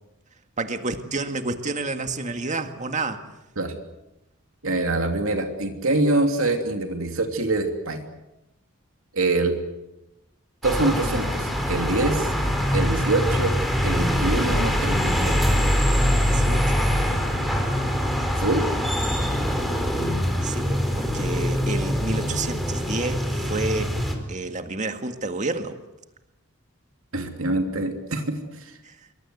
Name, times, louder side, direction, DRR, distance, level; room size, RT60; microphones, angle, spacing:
voice 1, 0.6-3.3 16.0-16.9 20.4-24.0 24.3-25.8 28.8-29.0, right 3 dB, 35° right, 7 dB, 2.0 m, -30 dB
voice 2, 4.6-8.0 9.1-9.5 10.6-12.3 12.7-13.5 13.8-15.4 18.4-18.6 27.1-28.7, right 2 dB, 65° right, 4 dB, 3.0 m, -24 dB
sound 1, 10.6-24.1, equal, ahead, 4.3 m, -23 dB
26.5 x 23.5 x 8.1 m, 0.93 s
head